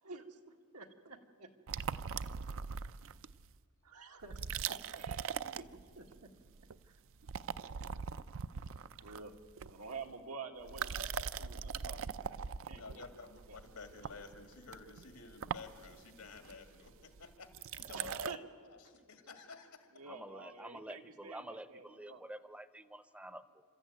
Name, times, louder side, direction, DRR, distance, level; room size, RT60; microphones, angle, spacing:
voice 1, 0.0-1.5 3.8-6.3 6.8-7.0 7.9-8.0 9.0-9.3 9.7-13.6 17.9-18.4 18.9-19.0 19.9-22.3, right 4 dB, 90° right, 4 dB, 1.7 m, -50 dB
sound 1, 1.7-3.5 4.2-6.2 6.5-6.9 7.1-10.1 10.6-18.4, right 7 dB, 65° right, 0.5 m, -41 dB
voice 2, 12.7-18.2 18.7-19.9, left 4 dB, 90° left, 7 dB, 2.2 m, -52 dB
voice 3, 20.1-23.6, right 1 dB, 5° right, 14 dB, 0.6 m, -49 dB
28.0 x 13.5 x 9.3 m, 2.1 s
head